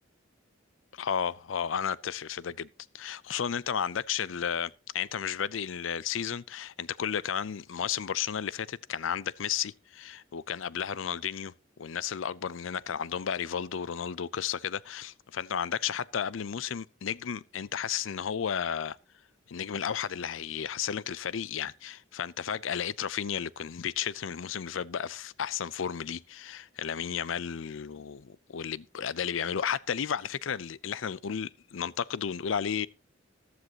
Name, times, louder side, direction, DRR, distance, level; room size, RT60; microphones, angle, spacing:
voice 1, 0.9-2.7 2.9-11.5 11.8-19.0 19.5-32.9, left 8 dB, 80° left, 0.5 m, -33 dB
14.0 x 12.0 x 2.9 m
head